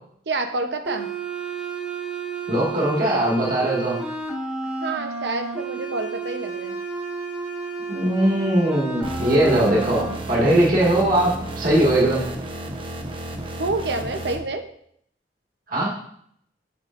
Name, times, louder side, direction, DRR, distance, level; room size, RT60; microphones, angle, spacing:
voice 1, 0.3-1.1 4.8-6.8 13.6-14.7, right 2 dB, 75° right, 6 dB, 0.8 m, -28 dB
sound 1, 0.9-10.1, right 4 dB, 5° right, 1.5 m, -31 dB
voice 2, 2.5-4.0 7.9-12.2 15.7-15.9, right 1 dB, 50° right, -4 dB, 1.8 m, -20 dB
sound 2, 9.0-14.4, right 1 dB, 30° right, 0.8 m, -33 dB
8.8 x 6.8 x 2.5 m, 0.67 s
head